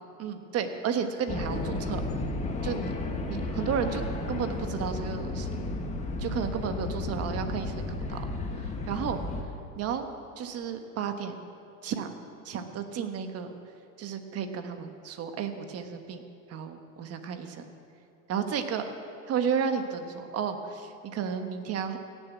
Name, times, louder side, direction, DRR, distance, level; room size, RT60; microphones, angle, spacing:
voice 1, 0.2-2.0 2.6-2.9 3.3-5.5 6.2-8.2 8.8-9.2 9.8-10.1 10.4-11.3 11.8-12.1 12.4-13.5 14.0-16.2 16.5-17.7 18.3-18.9 19.3-22.0, right 7 dB, 35° right, 7 dB, 1.2 m, -32 dB
sound 1, 1.3-9.4, left 2 dB, 15° left, 1.3 m, -33 dB
17.5 x 7.3 x 8.2 m, 2.6 s
supercardioid pair, 135°, 41 cm